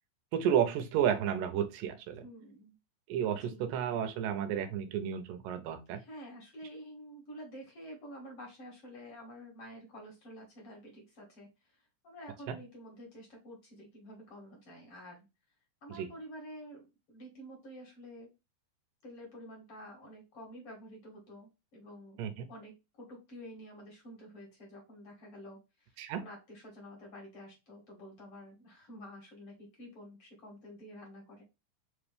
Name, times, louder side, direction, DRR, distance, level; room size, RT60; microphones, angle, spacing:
voice 1, 0.3-2.2 3.1-6.0 12.5-12.6 16.0-16.1 22.2-22.5 26.0-26.2, right 9 dB, 80° right, 8 dB, 2.3 m, -32 dB
voice 2, 2.2-2.8 3.3-3.6 5.9-15.3 15.8-18.3 19.0-31.4, equal, 50° left, -2 dB, 2.0 m, -49 dB
5.1 x 3.0 x 3.3 m, 0.25 s
omnidirectional pair, 3.9 m